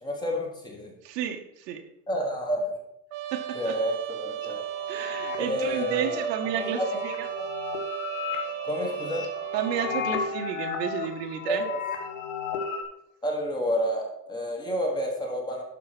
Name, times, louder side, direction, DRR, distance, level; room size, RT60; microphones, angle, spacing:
voice 1, 0.0-0.9 2.1-2.8 3.5-4.6 5.4-7.0 7.3-7.5 8.6-9.3 11.5-11.8 13.2-15.6, equal, 10° left, 0 dB, 1.1 m, -30 dB
voice 2, 1.0-1.8 3.3-3.7 4.9-7.1 9.5-11.7, right 8 dB, 80° right, 5 dB, 1.6 m, -31 dB
Trumpet, 3.1-10.0, right 12 dB, 30° right, 0.4 m, -35 dB
sound 1, 4.4-12.8, left 6 dB, 55° left, 1.8 m, -35 dB
11.5 x 4.7 x 6.1 m, 0.80 s
supercardioid pair, 180°, 48 cm